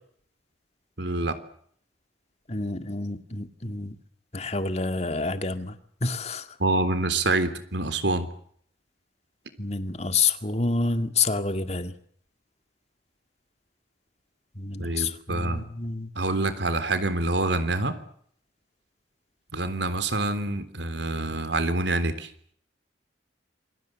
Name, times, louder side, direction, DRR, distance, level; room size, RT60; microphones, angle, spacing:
voice 1, 1.0-1.3 6.6-8.3 14.8-15.7 16.2-18.0 19.5-22.3, right 2 dB, 65° right, 11 dB, 3.5 m, -26 dB
voice 2, 2.5-4.0 4.3-6.5 9.6-11.9 14.6-16.1, left 4 dB, 35° left, 9 dB, 2.1 m, -28 dB
28.0 x 23.0 x 7.6 m, 0.63 s
head